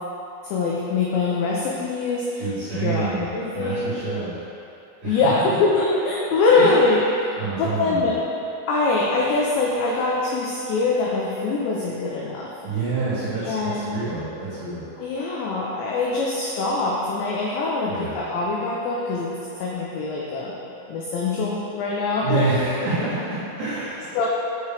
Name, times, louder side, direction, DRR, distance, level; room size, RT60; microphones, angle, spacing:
voice 1, 0.4-2.4 2.7-3.9 5.0-8.2 8.7-12.5 13.4-14.0 15.0-20.5 20.9-22.5 24.1-24.3, left 3 dB, 85° left, -4 dB, 2.5 m, -23 dB
voice 2, 2.4-3.2 3.5-4.3 5.0-5.5 6.6-6.9 7.4-8.1 12.6-14.9 17.9-18.1 22.2-24.3, right 3 dB, 60° right, -14 dB, 2.3 m, -27 dB
8.5 x 6.1 x 3.4 m, 2.8 s
omnidirectional pair, 6.0 m